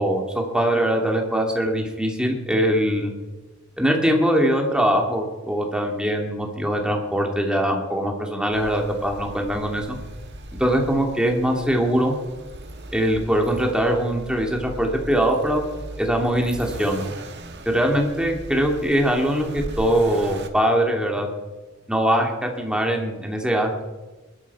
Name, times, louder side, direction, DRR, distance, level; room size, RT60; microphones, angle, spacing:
voice 1, 0.0-3.1 3.8-10.0 10.6-12.1 12.9-15.6 16.0-17.0 17.7-21.3 21.9-23.8, equal, 5° right, 1 dB, 2.5 m, -22 dB
Accelerating revving vroom, 8.5-20.5, right 1 dB, 60° right, 1.6 m, -38 dB
21.0 x 12.5 x 4.8 m, 1.2 s
head